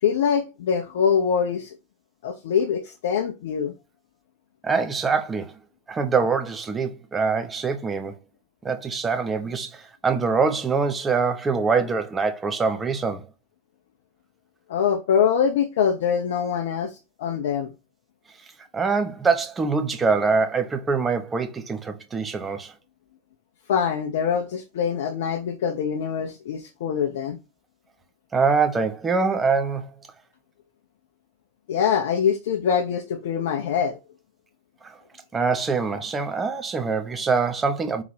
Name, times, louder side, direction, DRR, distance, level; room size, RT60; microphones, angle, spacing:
voice 1, 0.0-1.8 2.2-3.7 14.7-17.7 23.7-27.4 31.7-34.0, left 7 dB, 55° left, 0.5 m, -24 dB
voice 2, 4.6-5.5 5.9-8.1 8.6-13.3 18.7-22.7 28.3-29.9 34.8-35.0 35.3-38.0, right 4 dB, 15° right, 0.7 m, -24 dB
3.9 x 2.8 x 4.6 m
figure-of-eight pair, 90°, 0 cm